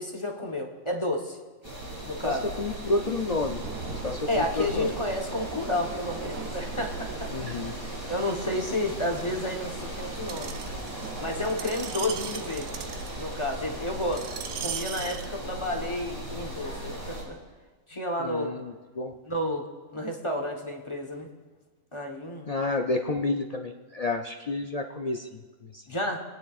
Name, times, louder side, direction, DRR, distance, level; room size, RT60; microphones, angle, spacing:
voice 1, 0.0-1.4 2.0-2.4 4.3-7.3 8.1-10.5 11.2-12.7 13.2-14.3 14.6-17.4 17.9-18.5 19.3-19.6 19.9-21.3 21.9-22.5 25.9-26.2, left 1 dB, 25° left, 1 dB, 1.1 m, -31 dB
sound 1, 1.6-17.2, right 1 dB, 20° right, 4.1 m, -37 dB
voice 2, 2.2-3.7 4.0-4.9 7.3-7.8 18.2-19.1 22.5-25.8, left 2 dB, 65° left, 3 dB, 0.3 m, -30 dB
sound 2, 3.3-16.3, right 6 dB, 60° right, 0.9 m, -44 dB
Screech, 10.3-15.3 16.0-16.1, right 9 dB, 85° right, 1.0 m, -38 dB
27.0 x 9.6 x 2.4 m, 1.3 s
omnidirectional pair, 1.4 m